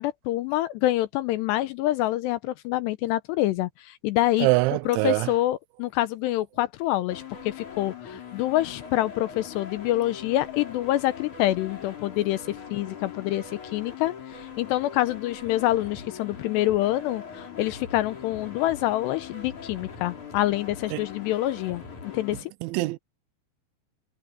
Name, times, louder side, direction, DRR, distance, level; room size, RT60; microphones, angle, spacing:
voice 1, 0.0-4.5 4.9-21.8 22.1-22.5, left 15 dB, 85° left, 2.6 m, -26 dB
voice 2, 4.4-5.3 20.9-21.0 22.6-23.0, right 21 dB, 85° right, 3.0 m, -24 dB
sound 1, 7.1-22.4, left 6 dB, 40° left, 5.8 m, -41 dB
omnidirectional pair, 5.3 m